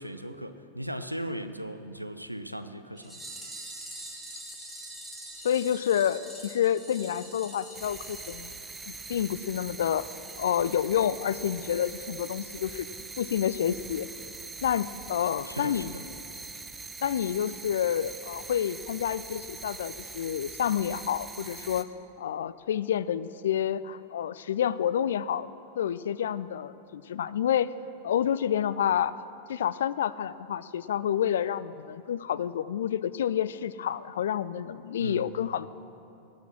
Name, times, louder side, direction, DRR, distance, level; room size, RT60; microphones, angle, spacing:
voice 1, 0.0-3.2 15.5-16.0 35.0-35.3, equal, 90° right, 10 dB, 0.5 m, -37 dB
sound 1, 3.0-9.1 9.4-9.5 9.8-9.9 10.3-10.4 10.7-10.8, right 1 dB, 5° left, 2.5 m, -44 dB
voice 2, 5.4-8.5 8.9-10.1 10.4-12.9 13.2-14.1 14.6-15.9 17.0-21.9 22.2-25.5 25.8-27.7 28.0-29.1 29.5-35.7, left 9 dB, 60° left, 18 dB, 0.3 m, -29 dB
sound 2, 7.7-21.8, right 4 dB, 10° right, 0.6 m, -43 dB
18.5 x 6.4 x 6.1 m, 2.8 s
figure-of-eight pair, 90°, 0 cm